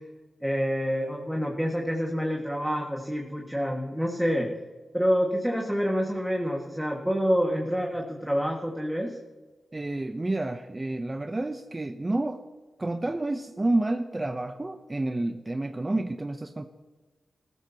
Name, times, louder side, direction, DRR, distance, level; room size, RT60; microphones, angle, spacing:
voice 1, 0.4-4.5 4.9-9.2, equal, 5° right, -1 dB, 1.8 m, -27 dB
voice 2, 9.7-12.4 12.8-16.7, right 2 dB, 25° right, 7 dB, 0.7 m, -29 dB
15.5 x 13.5 x 2.9 m, 1.3 s
cardioid pair, 55°, 0 cm